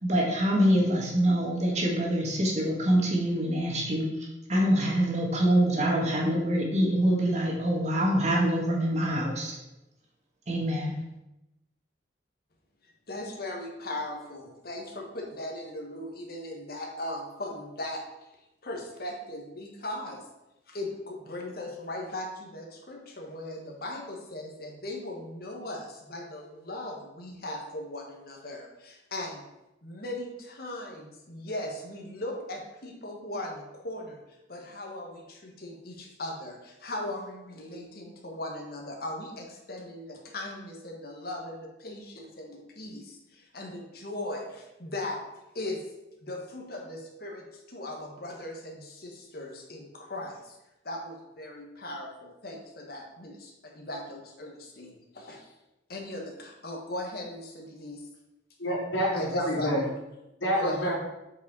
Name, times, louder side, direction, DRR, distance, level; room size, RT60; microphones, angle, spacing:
voice 1, 0.0-9.5 10.5-10.9, equal, 40° right, -1 dB, 1.6 m, -25 dB
voice 2, 12.8-18.0 18.6-20.2 20.7-29.4 29.8-45.2 45.5-45.8 46.2-50.6 50.8-55.5 55.9-58.1 59.1-59.9 60.6-60.8, left 1 dB, 55° left, 1 dB, 1.6 m, -38 dB
voice 3, 58.6-59.8 60.4-61.0, equal, 85° left, -4 dB, 2.9 m, -27 dB
7.8 x 5.5 x 4.1 m, 0.93 s
head